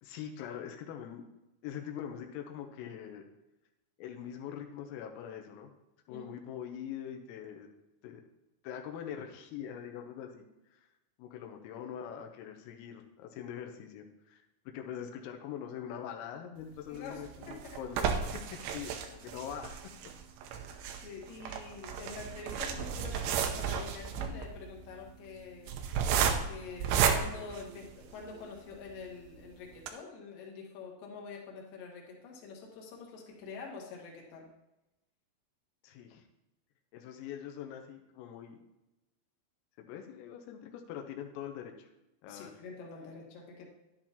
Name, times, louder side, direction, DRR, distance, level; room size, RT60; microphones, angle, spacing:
voice 1, 0.0-1.2 1.6-3.2 4.0-5.7 6.1-7.7 8.0-8.2 8.6-10.4 10.7-10.9 11.2-19.8 20.7-20.8 35.8-36.2 36.9-38.6 39.8-41.9 42.2-42.6, left 9 dB, 90° left, 4 dB, 3.5 m, -43 dB
voice 2, 16.9-17.8 20.5-20.6 21.0-25.7 26.4-34.5 42.2-43.7, left 4 dB, 60° left, -2 dB, 2.6 m, -46 dB
sound 1, 17.0-28.3 28.9-29.0 29.3-29.4 29.7-29.9, right 7 dB, 90° right, 2.5 m, -33 dB
11.0 x 10.5 x 2.9 m, 0.96 s
omnidirectional pair, 5.9 m